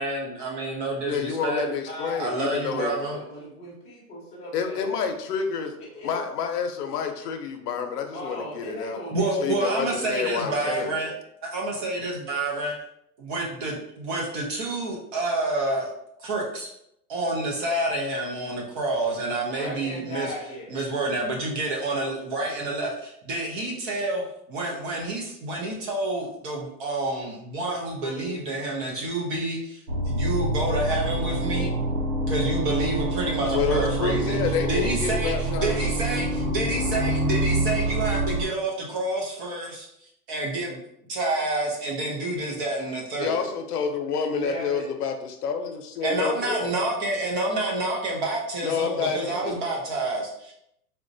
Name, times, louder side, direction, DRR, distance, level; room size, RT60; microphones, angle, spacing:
voice 1, 0.0-1.6 2.2-3.2 9.1-11.1 11.5-12.7 13.2-15.9 16.2-16.7 17.1-20.3 20.7-24.2 24.5-31.7 32.3-34.4 34.6-39.9 40.3-40.8 41.1-43.5 46.0-50.5, right 2 dB, 35° right, -1 dB, 0.6 m, -28 dB
voice 2, 1.0-3.2 4.5-5.8 6.0-9.0 9.4-10.9 33.5-35.8 43.2-46.7 48.6-49.6, left 6 dB, 75° left, 5 dB, 0.6 m, -29 dB
voice 3, 1.9-5.0 5.8-6.3 8.1-9.9 10.2-11.1 19.6-20.7 28.0-28.3 36.7-37.3 44.3-44.9, equal, 15° left, -5 dB, 0.8 m, -37 dB
sound 1, 29.9-38.5, right 1 dB, 75° right, 0.9 m, -26 dB
4.0 x 2.2 x 2.5 m, 0.76 s
hypercardioid pair, 145°, 48 cm